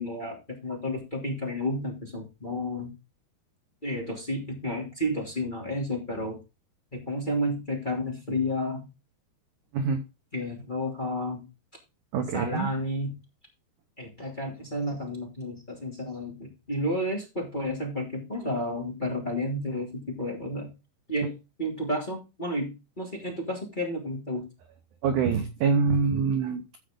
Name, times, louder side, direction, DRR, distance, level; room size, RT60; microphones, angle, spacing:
voice 1, 0.0-2.9 3.8-6.4 6.9-8.9 10.3-11.4 12.3-13.1 14.0-20.7 21.1-21.3 21.6-24.4, left 1 dB, 15° left, 2.3 m, -31 dB
voice 2, 12.1-12.7 25.0-26.6, right 5 dB, 75° right, 1.8 m, -25 dB
15.0 x 5.1 x 3.7 m
omnidirectional pair, 4.8 m